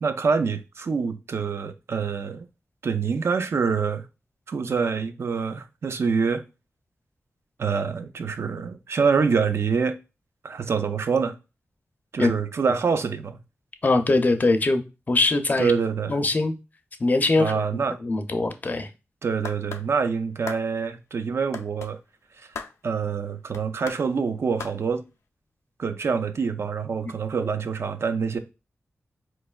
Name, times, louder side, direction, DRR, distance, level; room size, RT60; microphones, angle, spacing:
voice 1, 0.0-2.5 2.8-4.1 4.5-6.4 7.6-10.0 10.4-11.4 12.1-13.4 15.6-16.2 17.4-18.0 19.2-22.0 22.4-22.5 22.8-25.0 25.8-28.4, right 5 dB, 65° right, 0.4 m, -25 dB
voice 2, 13.8-15.7 16.1-16.6 17.0-18.9, left 2 dB, 35° left, 0.5 m, -22 dB
sound 1, 19.4-19.9 20.5-20.6 21.5-21.9 22.5-22.8 23.5-24.0 24.6-24.8, left 5 dB, 90° left, 0.4 m, -36 dB
4.2 x 3.2 x 2.3 m
wide cardioid pair, 110°, 5 cm